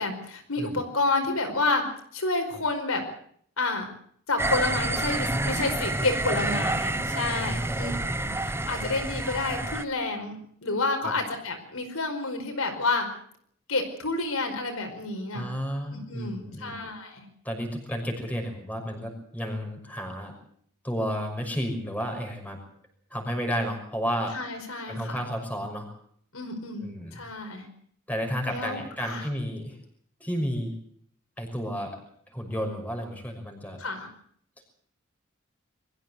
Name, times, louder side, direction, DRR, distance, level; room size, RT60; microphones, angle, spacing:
voice 1, 0.0-1.8 2.1-3.0 3.6-3.9 4.3-7.9 8.2-13.1 13.7-15.5 15.9-17.3 24.3-25.2 26.3-27.7 28.5-29.3 33.8-34.1, left 3 dB, 70° left, 5 dB, 4.9 m, -29 dB
sound 1, 4.4-9.9, right 2 dB, 10° right, 0.9 m, -29 dB
voice 2, 7.4-8.0 15.3-16.7 17.4-20.3 20.8-22.6 23.1-24.4 24.9-25.9 26.8-27.2 28.1-29.8 30.2-30.7 31.4-32.0 32.3-33.8, equal, 5° left, 3 dB, 6.0 m, -32 dB
22.5 x 15.0 x 8.3 m, 0.63 s
head